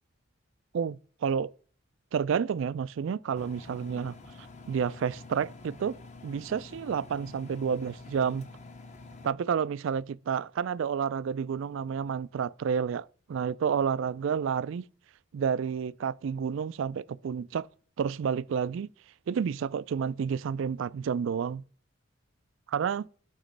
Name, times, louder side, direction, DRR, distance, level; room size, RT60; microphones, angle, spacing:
voice 1, 0.7-1.5 2.1-4.2 4.7-6.0 6.2-8.5 9.2-14.9 15.3-17.7 18.0-18.9 19.3-21.6 22.7-23.1, right 7 dB, 65° right, 0.3 m, -30 dB
Engine, 3.3-9.3, left 3 dB, 35° left, 0.7 m, -48 dB
9.0 x 3.1 x 6.6 m
head